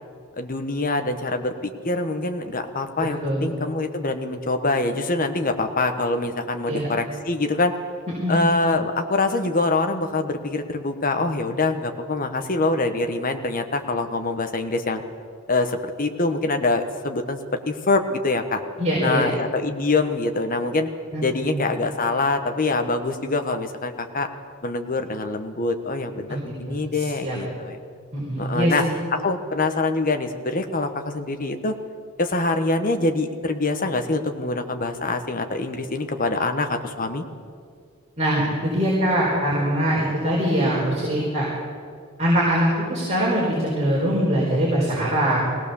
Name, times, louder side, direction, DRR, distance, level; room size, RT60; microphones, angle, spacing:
voice 1, 0.4-7.7 8.3-15.0 15.5-17.4 17.7-18.6 19.0-20.9 21.2-24.3 24.6-27.8 28.4-28.8 29.1-31.7 32.2-37.2, left 2 dB, 40° left, 6 dB, 1.3 m, -24 dB
voice 2, 18.8-19.2 21.1-21.6 26.3-26.4 26.7-27.4 28.1-28.9 38.2-41.5 42.2-45.5, equal, 35° right, -5 dB, 4.5 m, -22 dB
21.5 x 17.5 x 7.0 m, 2.2 s
head